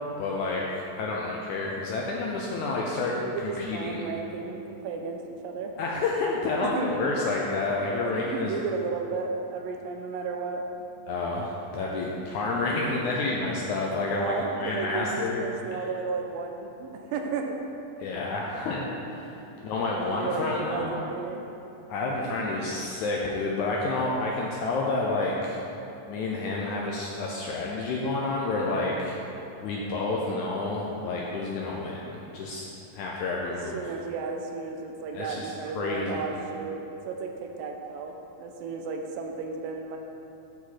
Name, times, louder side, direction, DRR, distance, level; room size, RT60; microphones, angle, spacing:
voice 1, 0.2-4.1 5.8-8.6 11.1-15.4 15.7-15.9 18.0-19.4 19.6-21.0 21.9-25.6 26.1-29.2 29.6-32.7 32.9-33.8 35.1-36.2, left 3 dB, 80° left, -3 dB, 1.8 m, -29 dB
voice 2, 3.1-5.7 6.6-6.9 8.0-10.7 14.1-17.6 19.5-21.4 22.4-22.5 33.5-40.0, right 4 dB, 85° right, 3 dB, 2.4 m, -34 dB
12.0 x 5.0 x 4.2 m, 3.0 s
omnidirectional pair, 4.1 m